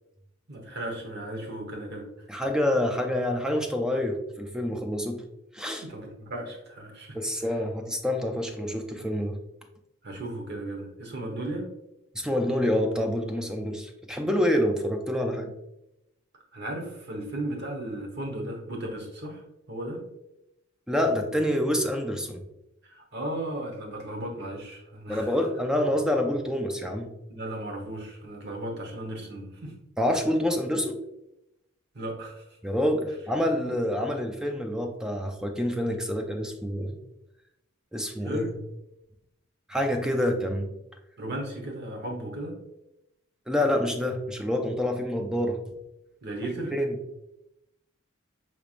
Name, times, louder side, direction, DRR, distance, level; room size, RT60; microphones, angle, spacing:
voice 1, 0.5-2.1 5.8-7.6 10.0-11.7 16.5-19.4 19.7-20.0 22.8-25.4 27.3-29.7 31.9-32.4 38.2-38.5 41.2-42.6 46.2-46.7, right 1 dB, 55° right, 1 dB, 1.1 m, -35 dB
voice 2, 2.3-5.2 5.5-5.9 7.1-9.4 12.1-15.5 20.9-22.4 25.1-27.1 30.0-31.0 32.6-37.0 37.9-38.6 39.7-40.7 43.5-45.7 46.7-47.0, left 1 dB, 5° right, 4 dB, 0.5 m, -27 dB
5.8 x 3.4 x 2.4 m, 0.88 s
head